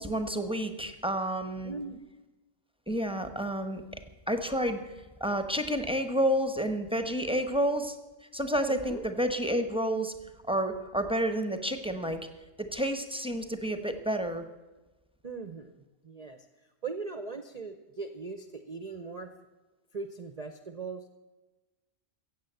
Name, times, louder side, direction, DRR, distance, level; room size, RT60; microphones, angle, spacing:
voice 1, 0.0-1.7 2.9-3.8 4.3-4.8 5.2-8.0 8.3-10.1 10.5-12.2 12.6-14.4, equal, 5° right, 7 dB, 0.8 m, -30 dB
voice 2, 1.6-2.0 8.7-9.0 15.2-15.7 16.0-16.5 16.8-19.3 19.9-21.1, right 4 dB, 40° right, 8 dB, 0.7 m, -39 dB
15.5 x 8.1 x 7.9 m, 1.2 s
omnidirectional pair, 1.3 m